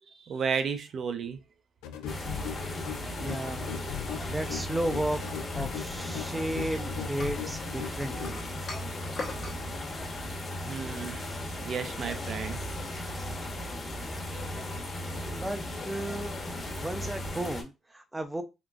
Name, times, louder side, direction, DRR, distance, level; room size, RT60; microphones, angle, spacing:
voice 1, 0.2-1.4 10.7-12.6 13.1-13.2, right 6 dB, 55° right, 0.6 m, -33 dB
sound 1, 1.8-8.4, left 9 dB, 90° left, 0.4 m, -39 dB
sound 2, 2.1-17.6, left 1 dB, 35° left, 1.1 m, -36 dB
voice 2, 3.2-3.7 4.3-8.4 15.4-16.4 16.8-18.4, right 1 dB, 10° right, 0.6 m, -34 dB
sound 3, 7.2-9.6, left 3 dB, 55° left, 1.0 m, -40 dB
3.7 x 2.4 x 2.4 m
supercardioid pair, 75°, 0 cm